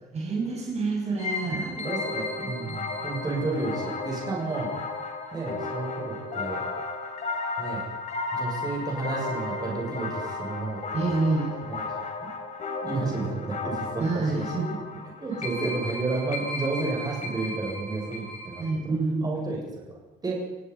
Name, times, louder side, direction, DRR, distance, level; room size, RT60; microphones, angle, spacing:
voice 1, 0.1-1.7 10.9-11.5 14.0-14.8 18.6-19.3, right 3 dB, 40° right, -1 dB, 6.9 m, -27 dB
sound 1, 1.2-18.7, left 3 dB, 45° left, 4.1 m, -34 dB
voice 2, 1.4-4.7 5.3-6.6 7.6-7.8 8.3-11.2 11.7-12.3 12.8-14.5 15.0-18.9 19.2-19.9 20.2-20.4, right 3 dB, 25° right, -2 dB, 7.2 m, -32 dB
29.0 x 17.5 x 5.7 m, 1.0 s
cardioid pair, 110°, 17 cm